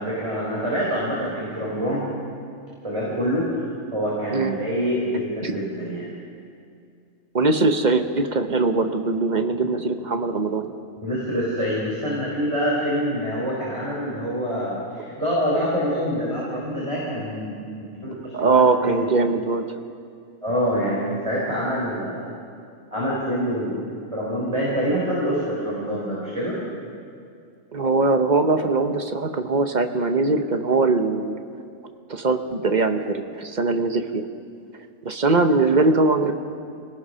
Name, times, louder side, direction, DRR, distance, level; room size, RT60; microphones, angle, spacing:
voice 1, 0.0-2.1 2.8-3.6 3.9-6.1 11.0-17.5 18.0-19.1 20.4-22.3 22.9-23.9 24.1-26.6, equal, 20° right, -6 dB, 4.2 m, -26 dB
voice 2, 7.3-10.7 18.3-19.6 27.7-31.4 32.1-34.3 35.0-36.3, right 3 dB, 35° right, 7 dB, 1.0 m, -21 dB
25.5 x 18.5 x 5.6 m, 2.4 s
omnidirectional pair, 1.5 m